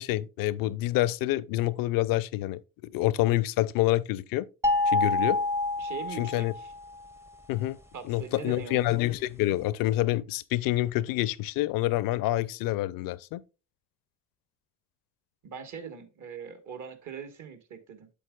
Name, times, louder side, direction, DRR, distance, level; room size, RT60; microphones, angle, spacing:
voice 1, 0.0-4.5 4.9-5.4 6.2-6.5 7.5-7.8 8.0-13.4, left 16 dB, 65° left, 0.5 m, -27 dB
sound 1, 4.6-6.9, left 2 dB, 5° right, 0.6 m, -27 dB
voice 2, 5.8-6.7 7.9-9.0 15.4-18.1, right 7 dB, 50° right, 1.4 m, -41 dB
8.4 x 7.4 x 2.3 m
supercardioid pair, 70°, 37 cm